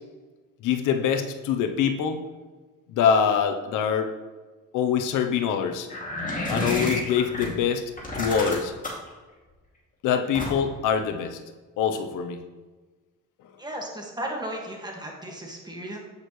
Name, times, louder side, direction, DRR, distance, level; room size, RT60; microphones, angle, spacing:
voice 1, 0.6-2.2 2.9-4.1 4.7-5.9 6.5-7.8 8.1-8.7 10.0-11.4 11.8-12.4, left 7 dB, 85° left, 6 dB, 0.7 m, -24 dB
sound 1, 5.9-7.5 8.0-9.1 10.3-10.8, left 1 dB, 25° left, 2.4 m, -30 dB
voice 2, 13.6-16.0, right 1 dB, 15° right, 0 dB, 1.7 m, -35 dB
8.4 x 6.5 x 3.1 m, 1.3 s
cardioid pair, 90°, 30 cm